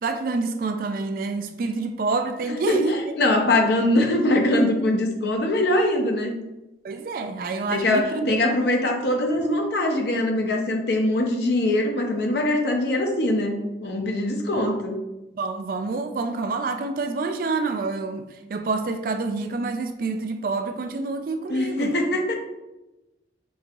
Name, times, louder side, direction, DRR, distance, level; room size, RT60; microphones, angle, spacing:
voice 1, 0.0-2.9 6.8-8.4 14.6-14.8 15.4-22.0, right 3 dB, 50° right, 0.3 m, -27 dB
voice 2, 2.4-6.4 7.7-15.0 21.5-22.3, left 1 dB, 65° left, 0.6 m, -22 dB
5.3 x 2.8 x 2.3 m
head